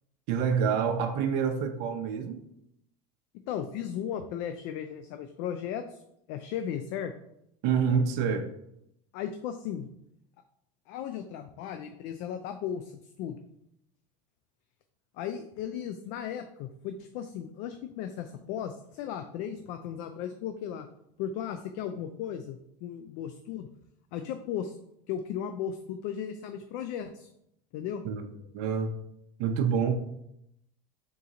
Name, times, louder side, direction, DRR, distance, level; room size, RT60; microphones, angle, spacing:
voice 1, 0.3-2.4 7.6-8.5 28.0-28.2 28.5-28.9 29.4-29.9, right 6 dB, 65° right, 5 dB, 0.6 m, -27 dB
voice 2, 3.3-6.0 6.3-7.1 9.1-9.9 10.9-13.4 15.1-20.9 21.2-23.7 24.1-24.8 25.1-27.3 27.7-28.0, left 9 dB, 60° left, 8 dB, 0.4 m, -36 dB
3.7 x 2.9 x 3.9 m, 0.78 s
supercardioid pair, 105°, 21 cm